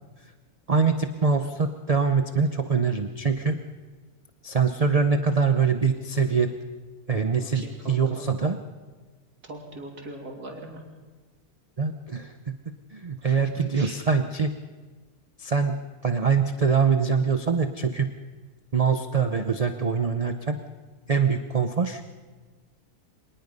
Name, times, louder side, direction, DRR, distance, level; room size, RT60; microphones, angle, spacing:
voice 1, 0.7-3.6 4.4-6.5 7.1-8.6 11.8-12.5 12.9-14.5 15.4-15.8 16.0-18.1 18.7-20.6 21.1-22.0, right 5 dB, 30° right, 7 dB, 0.8 m, -24 dB
voice 2, 7.4-8.3 9.4-10.8 13.2-14.0, right 1 dB, 85° right, 1 dB, 3.6 m, -41 dB
25.0 x 19.5 x 5.4 m, 1.4 s
omnidirectional pair, 1.6 m